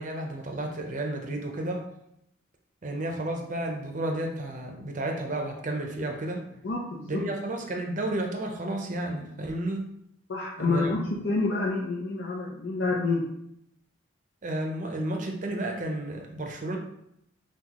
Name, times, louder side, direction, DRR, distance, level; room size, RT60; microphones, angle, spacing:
voice 1, 0.0-1.9 2.8-6.4 7.1-9.9 10.6-11.0 14.4-16.8, right 1 dB, 40° right, 2 dB, 0.6 m, -32 dB
voice 2, 6.6-7.2 10.3-11.0 11.2-13.2, left 3 dB, 70° left, -5 dB, 0.7 m, -28 dB
5.9 x 2.3 x 2.9 m, 0.78 s
head